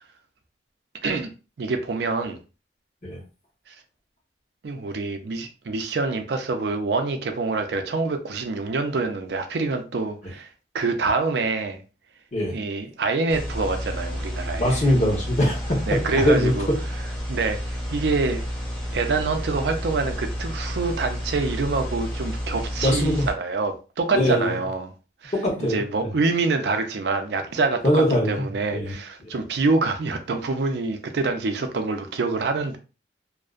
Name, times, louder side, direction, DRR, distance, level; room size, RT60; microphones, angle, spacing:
voice 1, 1.6-2.4 3.7-3.8 4.6-10.5 10.7-11.8 12.5-14.9 15.9-16.7 17.3-18.4 18.9-24.9 25.2-25.3 25.6-32.8, right 3 dB, 65° right, 0.4 m, -26 dB
sound 1, 13.3-23.3, equal, 5° left, 0.7 m, -31 dB
voice 2, 14.6-15.9 16.1-16.5 22.8-23.3 24.1-24.6 25.3-25.8 27.8-28.4 28.7-29.0, equal, 40° left, 0.9 m, -21 dB
2.5 x 2.1 x 2.4 m
head